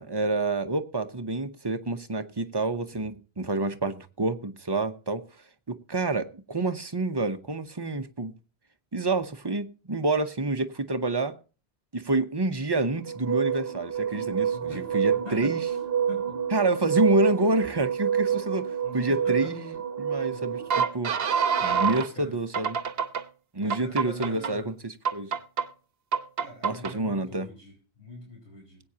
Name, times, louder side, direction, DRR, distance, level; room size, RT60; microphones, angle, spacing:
voice 1, 0.0-5.2 5.7-8.3 8.9-11.4 11.9-15.6 16.5-19.7 20.0-21.1 21.6-22.8 23.5-25.3 26.6-27.5, right 2 dB, 25° right, 0.8 m, -28 dB
sound 1, 13.1-22.1 22.5-23.2 23.7-24.5 25.0-25.6 26.1-26.9, right 7 dB, 70° right, 1.1 m, -27 dB
voice 2, 14.5-15.8 16.1-16.4 18.8-19.5 20.3-20.6 21.9-22.4 23.6-24.7 26.4-28.8, left 1 dB, 65° left, 4.8 m, -44 dB
20.5 x 8.8 x 2.8 m
omnidirectional pair, 1.0 m